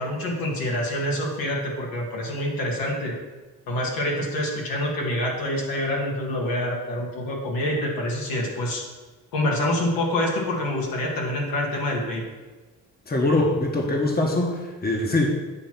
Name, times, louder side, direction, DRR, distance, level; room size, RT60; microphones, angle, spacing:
voice 1, 0.0-3.1 3.7-8.8 9.3-12.2, left 1 dB, 75° left, -2 dB, 1.9 m, -26 dB
voice 2, 13.1-15.3, left 2 dB, 25° left, 0 dB, 1.3 m, -23 dB
8.8 x 3.0 x 5.9 m, 1.3 s
cardioid pair, 75°, 35 cm